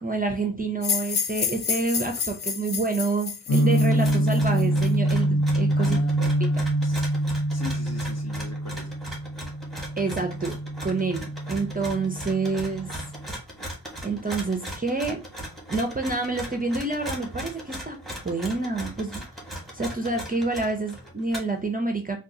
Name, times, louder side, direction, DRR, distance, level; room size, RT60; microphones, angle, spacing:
voice 1, 0.0-6.0 10.0-10.5 10.8-12.9 14.0-15.2 15.7-18.0 18.2-19.3 19.7-22.2, right 3 dB, 20° right, 0.5 m, -28 dB
sound 1, 0.8-4.9, left 6 dB, 60° left, 0.6 m, -29 dB
sound 2, 3.5-13.3, right 1 dB, 75° left, 1.1 m, -25 dB
sound 3, 3.8-21.6, right 1 dB, ahead, 1.1 m, -39 dB
voice 2, 5.8-7.1 7.5-8.9, left 5 dB, 35° left, 0.9 m, -38 dB
3.7 x 2.3 x 2.7 m
wide cardioid pair, 75°, 44 cm